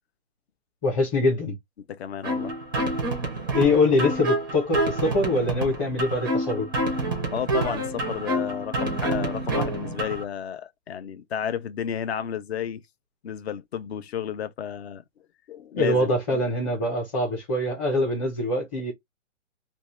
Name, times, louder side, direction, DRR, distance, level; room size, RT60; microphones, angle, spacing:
voice 1, 0.8-1.6 3.5-6.7 15.8-18.9, left 2 dB, 25° left, 0.9 m, -24 dB
voice 2, 1.8-2.5 7.3-12.8 13.2-15.0 15.5-16.4, left 9 dB, 55° left, 0.6 m, -32 dB
sound 1, 2.2-10.2, right 1 dB, 20° right, 0.4 m, -28 dB
2.6 x 2.2 x 3.1 m
hypercardioid pair, 155°, 39 cm